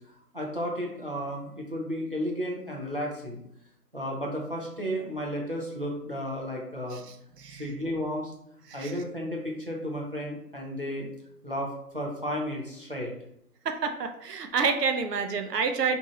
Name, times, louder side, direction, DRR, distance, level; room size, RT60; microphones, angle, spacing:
voice 1, 0.3-3.4 3.9-7.0 7.5-8.3 8.7-11.1 11.4-13.1, equal, 40° right, -2 dB, 0.4 m, -33 dB
voice 2, 13.6-16.0, right 5 dB, 90° right, 6 dB, 0.6 m, -28 dB
2.6 x 2.4 x 3.0 m, 0.75 s
hypercardioid pair, 165°, 47 cm